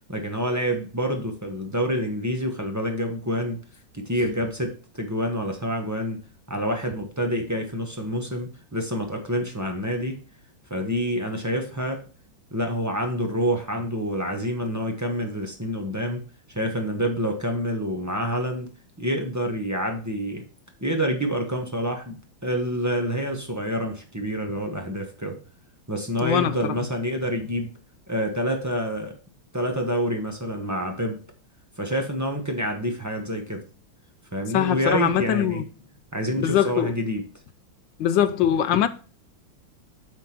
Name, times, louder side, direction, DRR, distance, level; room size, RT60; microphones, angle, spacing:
voice 1, 0.1-3.6 3.9-6.2 6.5-10.2 10.7-12.0 12.5-18.7 19.0-20.4 20.8-25.4 25.9-27.7 28.1-29.1 29.5-31.2 31.8-33.6 34.3-35.6 36.1-37.3, equal, 15° right, 0.8 m, -27 dB
voice 2, 26.2-26.7 34.5-35.6 36.4-36.9 38.0-38.9, left 10 dB, 70° left, 1.3 m, -22 dB
9.1 x 3.6 x 5.9 m
omnidirectional pair, 2.2 m